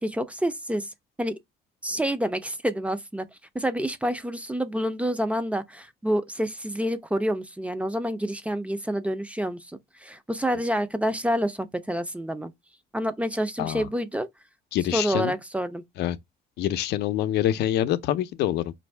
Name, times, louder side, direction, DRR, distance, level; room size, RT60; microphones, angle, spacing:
voice 1, 0.0-0.9 1.2-1.4 1.8-3.3 3.5-12.5 12.9-14.3 14.9-15.8, equal, 5° right, 0.5 m, -28 dB
voice 2, 14.7-15.3 16.0-16.2 16.6-18.7, left 12 dB, 80° left, 0.5 m, -25 dB
4.4 x 2.6 x 3.2 m
cardioid pair, 110°, 17 cm